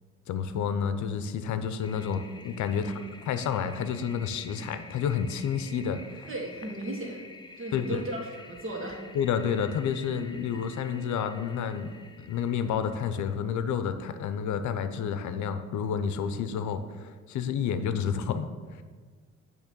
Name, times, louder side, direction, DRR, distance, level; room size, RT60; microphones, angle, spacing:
voice 1, 0.3-2.9 3.3-6.3 7.7-8.1 9.1-18.5, left 7 dB, 70° left, 10 dB, 0.6 m, -30 dB
Toilet flush, 1.8-13.4, left 3 dB, 15° left, 0.6 m, -50 dB
voice 2, 6.3-7.3 7.6-9.0, right 1 dB, 45° right, 0 dB, 1.7 m, -36 dB
8.8 x 3.1 x 6.1 m, 1.5 s
cardioid pair, 90°, 30 cm